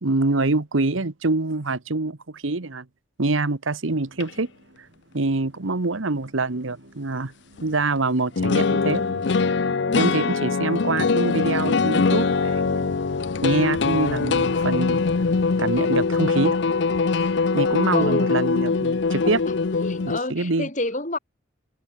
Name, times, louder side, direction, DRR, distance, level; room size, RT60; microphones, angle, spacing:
voice 1, 0.0-2.8 3.2-4.5 5.1-7.3 7.6-9.0 9.9-12.9 13.4-15.0 15.6-16.6 17.5-19.4 20.3-20.7, right 3 dB, 80° right, 1.2 m, -25 dB
sound 1, 3.9-9.8, right 1 dB, 65° right, 8.0 m, -51 dB
sound 2, 4.2-4.3 7.6-7.7 8.4-20.2, left 4 dB, 60° left, 0.6 m, -22 dB
voice 2, 9.8-10.2 11.5-11.7 17.9-18.3 18.7-18.8 19.2-19.5 19.8-21.2, left 2 dB, 40° left, 4.2 m, -29 dB
head